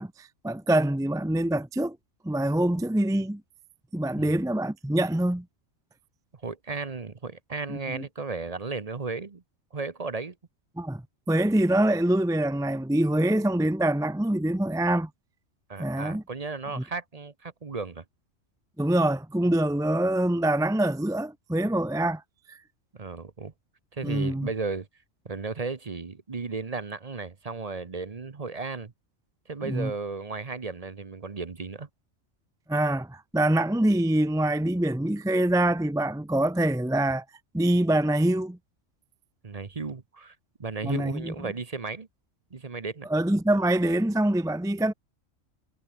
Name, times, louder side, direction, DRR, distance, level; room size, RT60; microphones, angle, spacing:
voice 1, 0.0-2.0 2.2-3.4 3.9-5.4 7.7-8.0 10.8-15.1 15.8-16.2 16.8-16.9 18.8-22.2 22.5-22.6 24.0-24.5 29.6-29.9 32.7-37.2 37.5-38.6 40.8-41.3 43.1-44.9, right 1 dB, 5° right, 0.4 m, -25 dB
voice 2, 6.4-9.4 9.7-10.4 15.7-18.0 22.9-23.5 23.9-24.9 25.2-28.9 29.5-31.9 39.4-40.3 40.6-42.1 42.5-43.1, right 4 dB, 35° right, 1.0 m, -34 dB
omnidirectional pair, 1.3 m